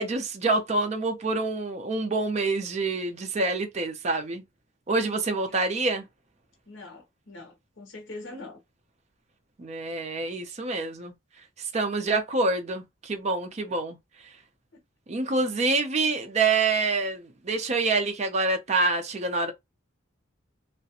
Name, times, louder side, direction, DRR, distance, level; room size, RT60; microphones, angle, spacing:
voice 1, 0.0-4.4 4.9-6.0 9.6-11.1 11.6-14.0 15.1-19.5, right 3 dB, 35° right, 0.5 m, -26 dB
voice 2, 6.7-8.6, left 2 dB, 65° left, 0.8 m, -43 dB
2.4 x 2.1 x 2.7 m
head